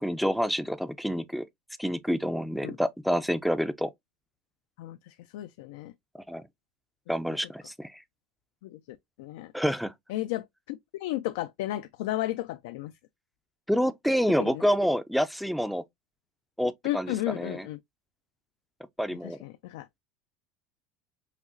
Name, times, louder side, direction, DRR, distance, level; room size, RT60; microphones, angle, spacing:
voice 1, 0.0-1.5 1.8-3.9 6.3-6.4 7.1-8.0 9.5-9.9 13.7-15.8 16.6-17.7 19.0-19.4, equal, ahead, 0.4 m, -28 dB
voice 2, 4.8-5.9 8.6-9.5 10.1-12.9 14.4-14.6 16.8-17.8 19.2-19.9, left 15 dB, 80° left, 0.3 m, -34 dB
5.8 x 2.0 x 2.5 m
supercardioid pair, 135°, 0 cm